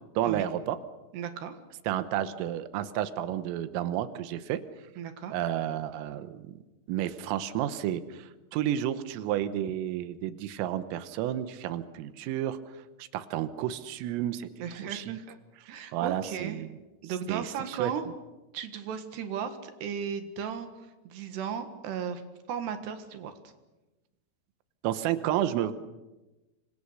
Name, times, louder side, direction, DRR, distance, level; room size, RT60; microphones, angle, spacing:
voice 1, 0.2-0.8 1.9-4.6 5.3-6.6 6.9-12.6 13.0-14.5 14.8-15.2 15.6-16.7 17.3-17.9 24.8-25.7, right 12 dB, 90° right, 12 dB, 3.7 m, -31 dB
voice 2, 1.1-1.5 5.0-5.4 14.6-15.4 15.7-16.6 17.0-18.0 18.5-20.7 21.1-22.2 22.5-23.3, right 7 dB, 65° right, 8 dB, 3.4 m, -35 dB
27.5 x 25.0 x 6.6 m, 1.1 s
omnidirectional pair, 5.8 m